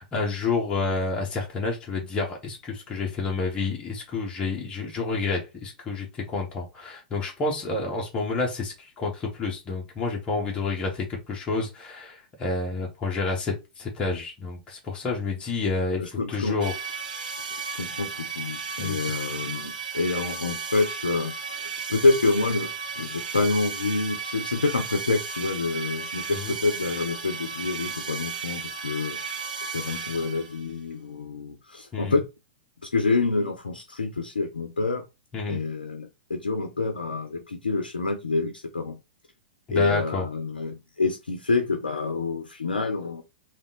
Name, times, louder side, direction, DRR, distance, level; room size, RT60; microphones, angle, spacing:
voice 1, 0.0-16.8 18.8-19.1 26.4-26.5 31.9-32.1 35.3-35.6 39.7-40.3, left 3 dB, 25° left, 1.1 m, -29 dB
voice 2, 16.0-16.6 17.4-32.2 32.8-35.0 35.5-39.0 39.7-43.2, left 3 dB, 85° left, 0.6 m, -27 dB
sound 1, 16.6-30.7, right 5 dB, 75° right, 0.9 m, -34 dB
3.5 x 2.5 x 3.8 m
figure-of-eight pair, 105°, 5 cm